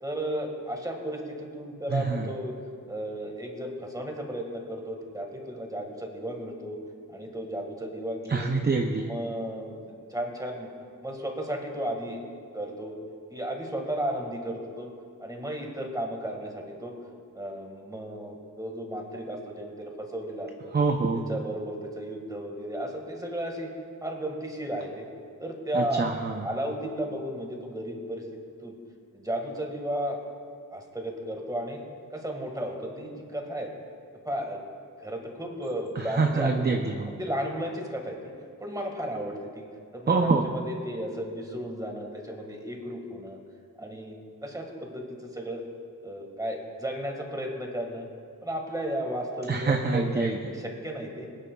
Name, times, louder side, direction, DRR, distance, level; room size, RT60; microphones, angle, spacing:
voice 1, 0.0-2.6 2.9-6.8 7.1-8.6 9.0-10.7 11.0-12.2 12.5-13.0 13.3-14.9 15.2-17.0 17.3-20.7 21.1-23.7 24.0-25.1 25.4-26.0 26.4-28.2 28.6-28.8 29.1-30.2 30.7-31.8 32.1-33.7 34.1-34.6 35.0-36.8 37.0-38.3 38.6-43.4 43.8-45.6 46.0-48.0 48.4-51.3, right 1 dB, 10° right, 1 dB, 1.7 m, -34 dB
voice 2, 1.9-2.3 8.3-9.1 20.7-21.2 25.7-26.4 36.1-37.1 40.1-40.4 49.5-50.4, right 4 dB, 30° right, 3 dB, 0.6 m, -25 dB
23.5 x 10.0 x 2.3 m, 2.2 s
wide cardioid pair, 115°, 35 cm